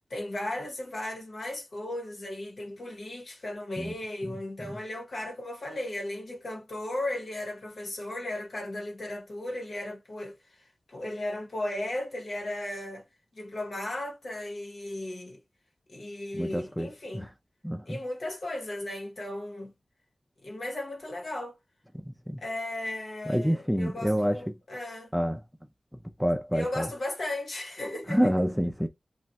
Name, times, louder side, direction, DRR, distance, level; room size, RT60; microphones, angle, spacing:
voice 1, 0.1-10.6 10.9-13.1 13.3-15.4 15.9-17.3 17.9-19.7 20.4-21.6 22.4-25.1 26.5-28.3, left 1 dB, 65° left, 1.0 m, -36 dB
voice 2, 16.3-17.3 17.6-18.0 22.3-22.4 23.3-24.4 25.1-25.4 26.2-26.9 28.1-28.9, equal, ahead, 0.4 m, -27 dB
2.4 x 2.2 x 3.9 m
wide cardioid pair, 100°, 0 cm